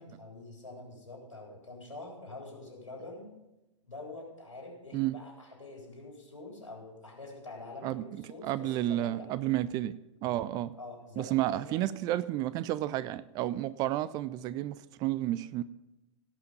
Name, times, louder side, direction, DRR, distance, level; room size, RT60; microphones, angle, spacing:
voice 1, 0.0-3.3 3.8-9.4 10.8-11.8, left 2 dB, 85° left, -1 dB, 3.7 m, -46 dB
voice 2, 7.8-10.0 10.2-10.7 11.2-15.6, right 14 dB, 25° right, 17 dB, 0.3 m, -31 dB
17.0 x 5.8 x 5.2 m, 0.97 s
figure-of-eight pair, 100°, 16 cm